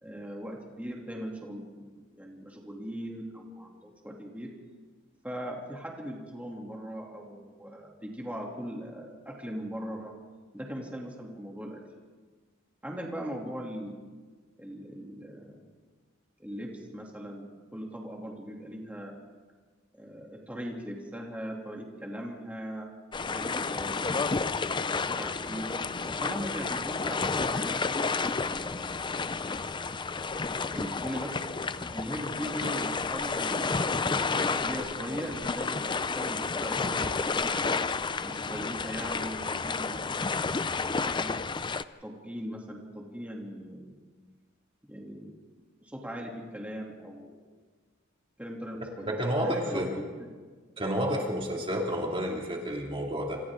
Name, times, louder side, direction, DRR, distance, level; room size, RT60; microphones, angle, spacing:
voice 1, 0.0-4.5 5.2-10.1 10.5-11.8 12.8-14.0 14.6-15.7 16.4-19.1 19.9-22.9 23.3-24.0 24.4-25.7 26.1-29.0 30.7-31.3 31.9-37.6 38.2-40.1 41.0-41.3 42.0-43.9 44.8-45.4 45.8-47.4 48.4-50.3, equal, 5° right, -1 dB, 2.8 m, -39 dB
sound 1, 23.1-41.8, left 4 dB, 25° left, 0.5 m, -31 dB
voice 2, 49.1-50.0 50.8-53.4, equal, 25° right, -1 dB, 2.6 m, -30 dB
27.0 x 26.5 x 3.8 m, 1.4 s
head